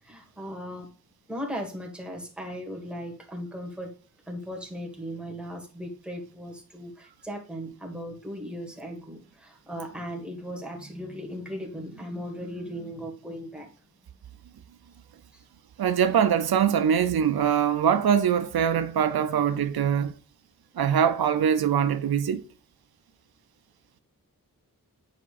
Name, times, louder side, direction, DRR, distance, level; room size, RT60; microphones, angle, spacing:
voice 1, 0.0-0.9 1.3-3.9 4.3-13.7 15.3-15.4, equal, 5° right, 1.6 m, -37 dB
voice 2, 15.8-20.1 20.7-22.4, right 8 dB, 90° right, 0.5 m, -23 dB
8.4 x 5.1 x 2.5 m
wide cardioid pair, 85°, 36 cm